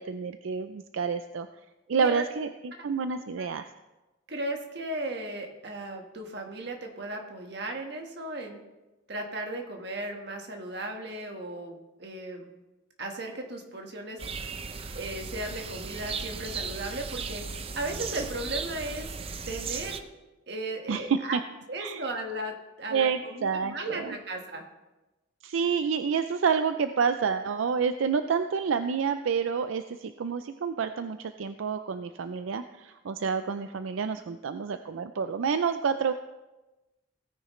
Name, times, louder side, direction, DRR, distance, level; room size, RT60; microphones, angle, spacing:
voice 1, 0.0-1.5 1.9-3.7 20.9-21.0 21.3-21.4 21.8-22.0 22.9-24.1 25.4-36.1, right 6 dB, 80° right, 9 dB, 0.4 m, -29 dB
voice 2, 3.2-3.5 4.3-8.6 9.1-12.5 13.0-14.2 14.9-17.4 17.7-19.1 19.5-20.0 20.5-21.4 21.7-24.6 33.2-33.3, right 1 dB, 55° right, 2 dB, 1.5 m, -36 dB
sound 1, 14.2-20.0, right 5 dB, 30° right, 0.5 m, -36 dB
17.0 x 9.5 x 3.2 m, 1.1 s
head